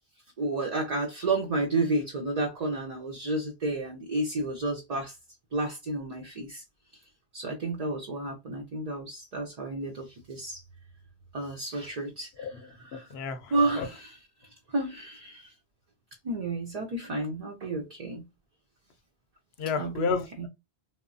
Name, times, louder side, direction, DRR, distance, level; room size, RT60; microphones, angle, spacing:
voice 1, 0.4-5.2 5.5-6.6 7.3-10.6 11.3-13.1 13.5-14.2 14.7-15.5 16.2-18.2 19.8-20.5, right 2 dB, 50° right, 0.5 m, -31 dB
voice 2, 12.9-13.9 19.6-20.5, left 5 dB, 90° left, 0.8 m, -32 dB
3.0 x 2.0 x 2.5 m
omnidirectional pair, 1.0 m